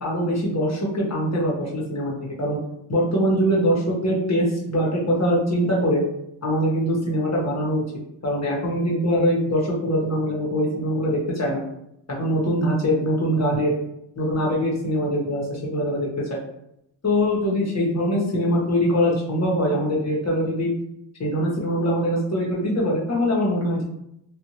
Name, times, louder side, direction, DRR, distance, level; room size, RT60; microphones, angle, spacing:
voice 1, 0.0-2.6 2.9-6.0 6.4-7.8 8.2-11.6 12.2-13.7 14.2-16.3 17.0-20.7 21.2-23.8, equal, 35° left, -4 dB, 1.2 m, -23 dB
2.6 x 2.5 x 2.9 m, 0.79 s
cardioid pair, 65°, 49 cm